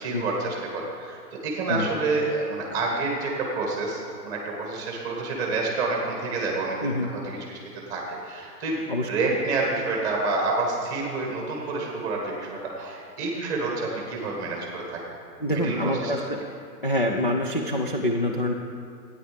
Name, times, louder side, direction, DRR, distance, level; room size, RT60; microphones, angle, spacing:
voice 1, 0.0-7.6 7.9-15.0 15.5-16.2, right 3 dB, 5° right, -1 dB, 1.3 m, -28 dB
voice 2, 15.4-16.4 16.8-18.5, left 1 dB, 35° left, 1 dB, 0.4 m, -26 dB
13.0 x 9.5 x 5.0 m, 2.3 s
hypercardioid pair, 170°, 50 cm